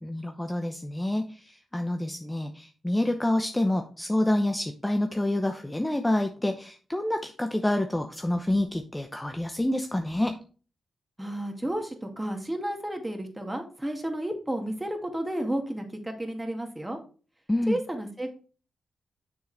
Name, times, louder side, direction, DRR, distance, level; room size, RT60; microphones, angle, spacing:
voice 1, 0.0-10.4 17.5-17.8, left 1 dB, 15° left, 6 dB, 0.8 m, -28 dB
voice 2, 11.2-17.0 17.7-18.3, right 1 dB, 10° right, 3 dB, 2.1 m, -32 dB
6.8 x 6.3 x 3.4 m, 0.37 s
cardioid pair, 60°, 0 cm